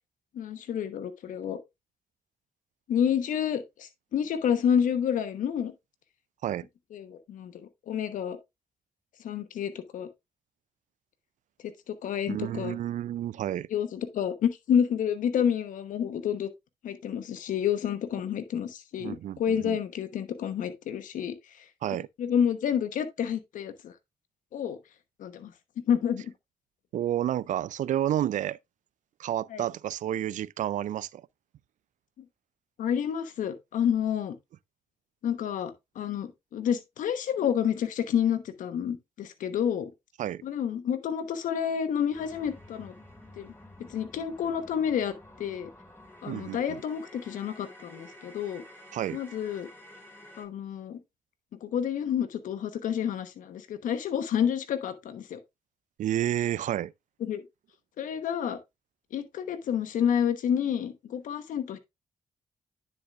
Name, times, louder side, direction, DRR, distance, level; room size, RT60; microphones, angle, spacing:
voice 1, 0.3-1.6 2.9-5.7 6.9-8.4 9.2-10.1 11.6-12.7 13.7-16.5 16.8-21.6 22.2-23.9 24.5-24.8 25.2-26.3 29.5-29.6 32.2-32.3 32.8-34.3 35.2-39.9 40.4-42.9 43.4-43.5 43.9-45.7 46.2-48.6 49.1-49.7 50.4-51.0 51.6-55.4 57.2-57.4 58.0-58.6 59.1-61.8, left 8 dB, 80° left, 1.1 m, -29 dB
voice 2, 12.3-13.7 19.0-19.8 21.8-22.1 26.9-28.6 29.2-31.2 40.2-40.4 46.2-46.6 48.9-49.2 56.0-56.9, right 12 dB, 70° right, 0.4 m, -30 dB
sound 1, 42.1-50.4, left 1 dB, 15° left, 4.8 m, -51 dB
10.0 x 6.5 x 2.4 m
supercardioid pair, 45°, 13 cm